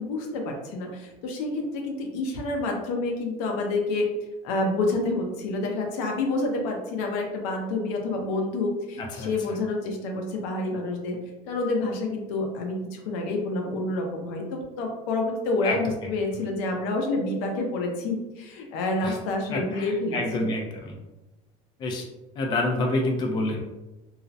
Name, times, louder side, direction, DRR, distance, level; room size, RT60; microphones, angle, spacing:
voice 1, 0.0-4.1 4.4-11.2 11.5-20.5, left 2 dB, 85° left, 2 dB, 0.6 m, -28 dB
voice 2, 9.0-9.3 15.6-16.1 19.0-19.2 19.5-20.9 21.8-22.0 22.4-23.6, left 2 dB, 30° left, 1 dB, 0.4 m, -28 dB
2.4 x 2.0 x 2.6 m, 1.0 s
cardioid pair, 155°, 16 cm